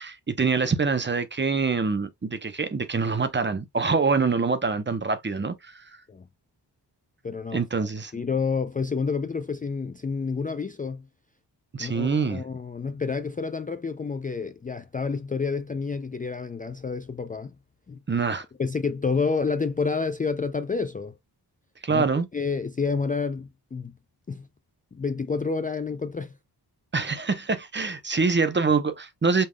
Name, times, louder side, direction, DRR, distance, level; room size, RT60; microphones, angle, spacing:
voice 1, 0.0-5.8 7.5-8.1 11.7-12.4 18.1-18.4 21.8-22.3 26.9-29.5, right 4 dB, 30° right, 0.8 m, -25 dB
voice 2, 7.2-11.1 11.8-17.6 17.9-18.0 18.6-21.1 21.9-22.0 22.3-23.9 24.3-24.5 24.9-26.4, left 5 dB, 20° left, 0.4 m, -29 dB
5.4 x 3.5 x 2.2 m
wide cardioid pair, 95°, 40 cm